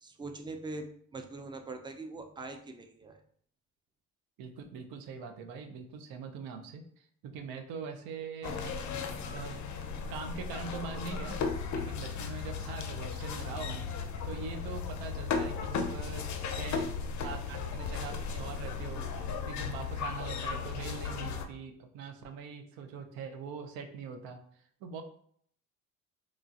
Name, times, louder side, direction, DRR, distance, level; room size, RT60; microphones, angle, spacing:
voice 1, 0.0-3.2, right 3 dB, 15° right, 5 dB, 0.3 m, -42 dB
voice 2, 4.4-6.8 7.2-8.7 9.3-9.6 10.1-11.4 11.7-13.9 14.2-17.0 17.2-19.1 19.5-24.4 24.8-25.0, right 5 dB, 80° right, 6 dB, 0.6 m, -42 dB
sound 1, 8.4-21.5, left 5 dB, 50° left, 0.5 m, -36 dB
3.1 x 2.5 x 2.4 m, 0.62 s
supercardioid pair, 70°, 36 cm